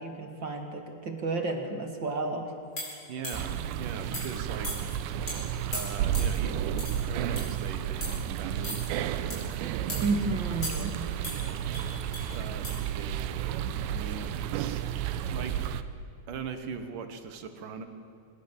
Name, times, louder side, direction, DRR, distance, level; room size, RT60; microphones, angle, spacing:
voice 1, 0.0-2.5 10.0-11.0, right 3 dB, 35° right, 4 dB, 2.0 m, -31 dB
sound 1, 2.8-3.6 4.1-4.4 4.6-5.0 5.3-5.4 5.7-6.4 6.8-7.0 7.4-7.6 8.0-8.2 8.6-8.9 9.3-9.5 9.9-10.1 10.6-11.0 11.2-12.3 12.6-12.8, left 1 dB, 25° left, 7.7 m, -38 dB
voice 2, 3.1-4.7 5.7-12.0 12.3-14.9 15.3-15.7 16.3-17.8, right 6 dB, 60° right, 8 dB, 2.7 m, -41 dB
sound 2, 3.3-15.8, right 10 dB, 85° right, 3.1 m, -32 dB
26.0 x 21.5 x 7.4 m, 2.7 s
omnidirectional pair, 4.9 m